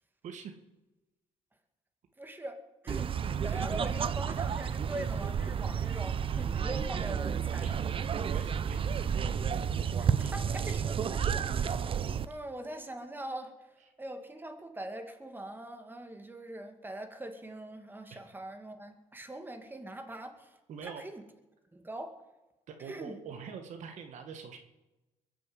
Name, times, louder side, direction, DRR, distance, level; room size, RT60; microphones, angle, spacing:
voice 1, 0.2-0.5 7.6-7.7 8.1-8.8 18.1-18.2 20.7-21.0 22.7-24.6, right 6 dB, 65° right, 5 dB, 1.7 m, -44 dB
voice 2, 2.2-3.1 3.4-7.7 10.0-12.0 12.2-13.5 14.0-20.5 20.8-21.2 21.7-22.1 22.8-23.2, right 1 dB, 15° right, 6 dB, 2.2 m, -42 dB
sound 1, 2.9-12.2, right 7 dB, 45° right, 0.7 m, -31 dB
22.0 x 7.5 x 7.8 m, 1.1 s
cardioid pair, 85°, 13 cm